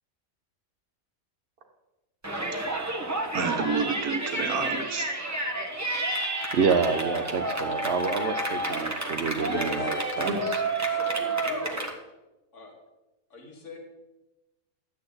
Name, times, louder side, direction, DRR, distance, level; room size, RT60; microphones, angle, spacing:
Yell, 2.2-11.9, right 2 dB, 15° right, 1.0 m, -30 dB
voice 1, 3.3-5.1 10.2-10.4, right 5 dB, 85° right, 3 dB, 1.6 m, -29 dB
voice 2, 6.5-10.3, right 5 dB, 60° right, 10 dB, 0.8 m, -28 dB
voice 3, 9.4-10.3 10.9-11.9 12.5-12.7 13.3-13.8, left 2 dB, 55° left, 1 dB, 2.0 m, -38 dB
12.0 x 8.8 x 4.0 m, 1.0 s
omnidirectional pair, 1.5 m